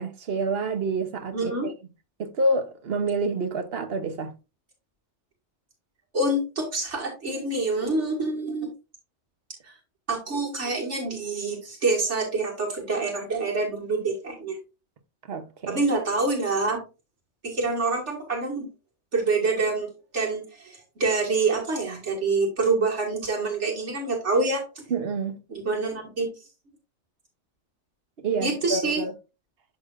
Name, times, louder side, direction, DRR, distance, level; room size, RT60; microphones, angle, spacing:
voice 1, 0.0-1.7 2.2-4.3 15.3-15.8 24.9-25.4 28.2-29.1, right 3 dB, 60° right, 1.1 m, -28 dB
voice 2, 1.3-1.7 6.1-8.7 9.6-9.7 10.1-14.6 15.7-16.8 17.4-18.7 19.1-24.8 25.5-26.3 28.4-29.0, right 3 dB, 85° right, 2.2 m, -26 dB
11.0 x 3.8 x 2.5 m
omnidirectional pair, 1.2 m